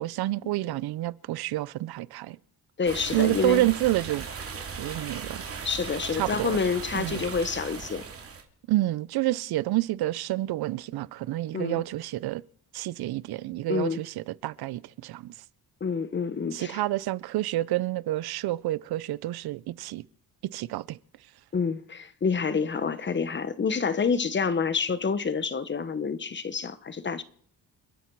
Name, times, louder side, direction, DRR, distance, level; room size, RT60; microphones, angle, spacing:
voice 1, 0.0-2.4 3.1-4.3 4.8-5.4 6.1-6.6 6.9-7.2 8.7-12.4 12.7-15.3 16.5-20.0 20.4-21.0, right 16 dB, 80° right, 0.6 m, -29 dB
voice 2, 2.8-3.7 5.6-8.0 11.5-11.8 13.7-14.0 15.8-16.8 21.5-27.2, left 5 dB, 30° left, 1.0 m, -28 dB
sound 1, 2.8-8.4, right 5 dB, 35° right, 2.8 m, -37 dB
30.0 x 10.0 x 4.7 m
cardioid pair, 120°, 37 cm